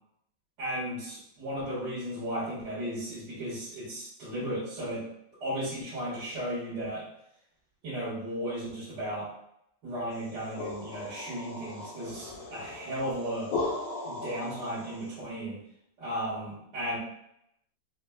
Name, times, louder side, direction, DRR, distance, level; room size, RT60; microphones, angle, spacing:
voice 1, 0.6-5.1 5.4-7.1 7.8-9.3 9.8-13.5 14.0-15.6 16.0-17.0, equal, 60° right, -11 dB, 2.5 m, -35 dB
sound 1, 10.2-15.2, left 3 dB, 85° left, 1.9 m, -37 dB
6.3 x 3.1 x 2.3 m, 0.77 s
omnidirectional pair, 2.1 m